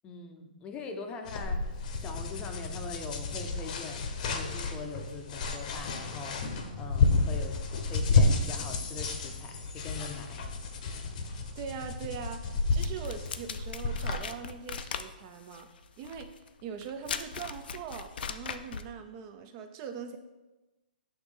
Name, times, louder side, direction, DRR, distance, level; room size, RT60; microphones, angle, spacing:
voice 1, 0.0-7.6 7.8-10.5, left 4 dB, 20° left, 5 dB, 0.6 m, -42 dB
sound 1, 1.3-14.2, left 3 dB, 50° left, 0.8 m, -31 dB
voice 2, 11.2-15.7 16.0-16.3 16.6-20.2, right 7 dB, 30° right, 7 dB, 0.4 m, -42 dB
sound 2, 12.8-18.9, left 6 dB, 70° left, 0.4 m, -39 dB
6.4 x 3.1 x 5.1 m, 1.1 s
hypercardioid pair, 150°, 5 cm